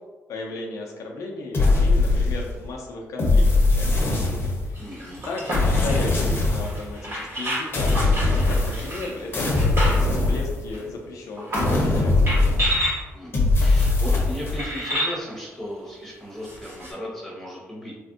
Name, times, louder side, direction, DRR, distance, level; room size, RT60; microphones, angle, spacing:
voice 1, 0.3-3.9 4.6-4.9 5.2-12.1, left 2 dB, 75° left, 0 dB, 0.4 m, -35 dB
sound 1, 1.5-2.7 3.2-4.8 5.5-6.8 7.7-9.0 9.3-10.9 11.5-12.9 13.3-14.6, left 2 dB, 40° left, 0.7 m, -21 dB
sound 2, 4.7-10.2 10.7-10.8 11.4-11.9 12.3-13.0 13.8-13.9 14.6-15.2 16.4-16.9, equal, 50° right, 1.3 m, -30 dB
voice 2, 4.8-5.2 13.1-18.0, equal, 5° left, -5 dB, 1.1 m, -36 dB
3.3 x 2.5 x 2.4 m, 1.3 s
cardioid pair, 85°, 6 cm